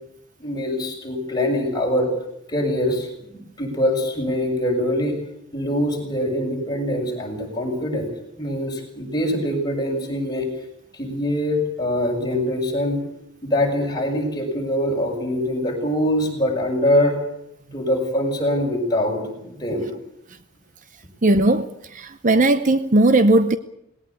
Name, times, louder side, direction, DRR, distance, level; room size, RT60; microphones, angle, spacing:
voice 1, 0.4-2.1 2.5-3.1 3.6-5.2 5.5-8.1 8.4-10.5 10.9-13.0 13.4-17.2 17.7-19.9, left 1 dB, 20° left, 6.9 m, -23 dB
voice 2, 21.2-21.7 21.9-23.6, right 2 dB, 40° right, 0.8 m, -17 dB
20.0 x 18.0 x 8.5 m
head